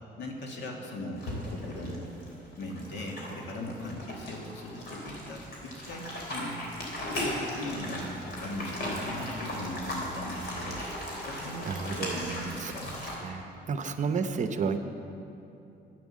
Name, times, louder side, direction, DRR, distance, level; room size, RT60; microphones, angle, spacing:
voice 1, 0.2-2.1 2.6-6.8 7.0-8.1 8.4-10.8 11.1-12.9, left 1 dB, 80° left, 1 dB, 2.0 m, -39 dB
sound 1, 1.2-13.2, left 1 dB, 65° left, 3.5 m, -37 dB
voice 2, 11.7-12.7 13.2-14.8, right 5 dB, 45° right, 8 dB, 0.8 m, -32 dB
11.5 x 8.8 x 7.4 m, 2.8 s
cardioid pair, 120°, 18 cm